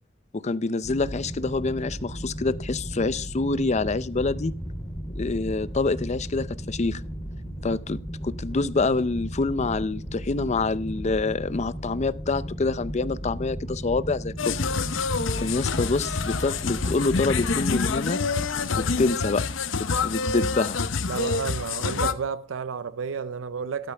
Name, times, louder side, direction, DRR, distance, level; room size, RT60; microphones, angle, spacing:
voice 1, 0.3-4.5 5.1-7.0 7.6-14.6 15.4-18.2 18.8-20.8, left 3 dB, 35° left, 0.5 m, -26 dB
sound 1, 0.8-17.9, equal, 5° left, 2.9 m, -35 dB
sound 2, 14.4-22.1, left 4 dB, 75° left, 0.8 m, -27 dB
voice 2, 21.1-23.9, right 6 dB, 80° right, 0.5 m, -31 dB
13.5 x 12.5 x 3.4 m
head